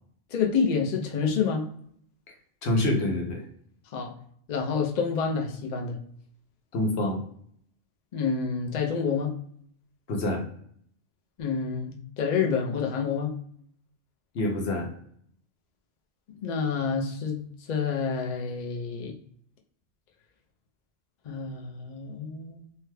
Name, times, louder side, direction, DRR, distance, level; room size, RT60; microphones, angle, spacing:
voice 1, 0.3-1.7 3.9-4.1 4.5-6.0 8.1-9.3 11.4-13.3 16.4-17.4 17.7-19.1 21.2-22.7, left 5 dB, 55° left, 1 dB, 0.5 m, -28 dB
voice 2, 2.6-3.4 6.7-7.2 10.1-10.4 14.3-14.9, left 1 dB, 75° left, 1 dB, 1.0 m, -26 dB
2.8 x 2.2 x 3.1 m, 0.64 s
omnidirectional pair, 1.2 m